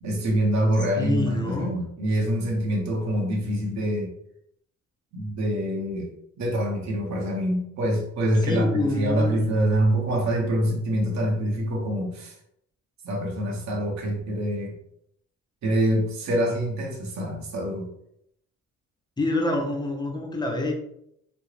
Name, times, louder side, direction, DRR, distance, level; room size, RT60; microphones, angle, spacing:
voice 1, 0.0-4.1 5.1-6.1 6.4-12.3 13.0-14.7 15.6-17.9, right 1 dB, 65° right, -1 dB, 0.8 m, -25 dB
voice 2, 1.0-1.8 8.4-9.6 19.2-20.7, left 2 dB, 15° left, 2 dB, 0.5 m, -27 dB
2.3 x 2.0 x 3.1 m, 0.74 s
cardioid pair, 90°, 30 cm